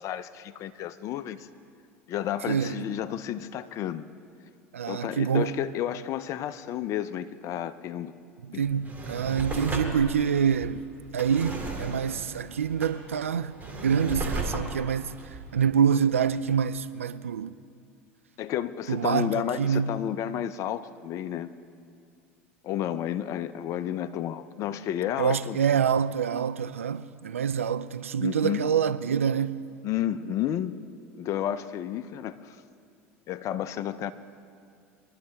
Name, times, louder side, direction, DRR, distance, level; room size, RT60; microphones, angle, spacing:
voice 1, 0.0-1.5 2.1-4.1 4.9-8.1 8.5-8.6 18.4-21.5 22.6-25.6 28.2-28.7 29.8-30.8 31.2-32.6 33.3-34.1, left 11 dB, 50° left, 0.6 m, -31 dB
voice 2, 2.5-2.9 4.7-5.5 8.4-10.8 11.1-17.5 18.9-20.0 25.2-29.6, right 7 dB, 90° right, 0.4 m, -26 dB
Drawer open or close, 8.6-16.3 16.8-16.9, right 2 dB, 25° right, 2.6 m, -36 dB
22.5 x 11.5 x 3.4 m
hypercardioid pair, 80°, 7 cm